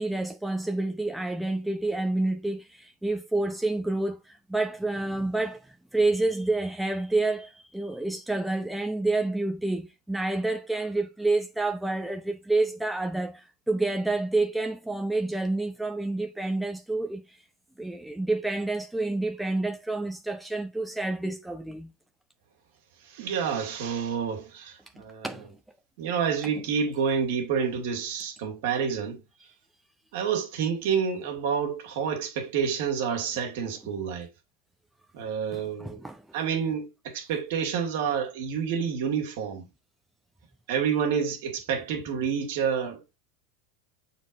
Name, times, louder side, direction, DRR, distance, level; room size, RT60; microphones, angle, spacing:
voice 1, 0.0-17.4 17.8-21.9 25.2-25.5 35.5-36.2, right 2 dB, 5° right, 0.9 m, -28 dB
voice 2, 23.1-25.3 26.0-29.2 30.1-34.3 35.1-36.0 36.3-39.7 40.7-43.2, right 7 dB, 60° right, 2.3 m, -28 dB
7.5 x 4.2 x 3.7 m
figure-of-eight pair, 85°, 0 cm